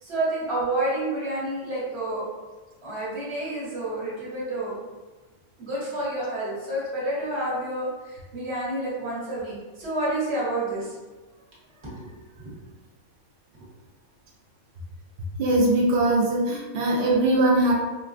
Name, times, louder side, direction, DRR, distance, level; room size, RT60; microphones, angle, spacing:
voice 1, 0.0-2.2 2.8-4.7 5.6-11.0 11.8-12.1 12.4-12.5, right 1 dB, 50° right, -7 dB, 1.3 m, -29 dB
voice 2, 15.4-17.7, right 1 dB, 70° right, -2 dB, 0.5 m, -21 dB
4.1 x 2.2 x 2.4 m, 1.2 s
omnidirectional pair, 1.5 m